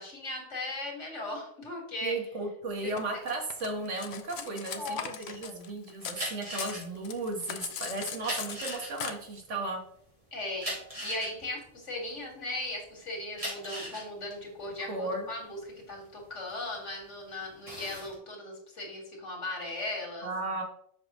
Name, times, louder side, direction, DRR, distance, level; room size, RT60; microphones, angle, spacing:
voice 1, 0.0-2.2 2.8-2.9 4.4-5.6 10.3-20.3, left 2 dB, 85° left, 0 dB, 2.4 m, -38 dB
voice 2, 2.0-9.8 14.9-15.3 20.2-20.6, right 2 dB, 85° right, 1 dB, 1.7 m, -35 dB
Cutlery silverware, 3.0-6.3 6.5-9.1, left 8 dB, 65° left, 0.9 m, -39 dB
sound 1, 6.1-12.7 13.2-17.0 17.4-18.1, equal, 30° right, 2.4 m, -39 dB
7.4 x 5.8 x 3.0 m, 0.66 s
omnidirectional pair, 1.2 m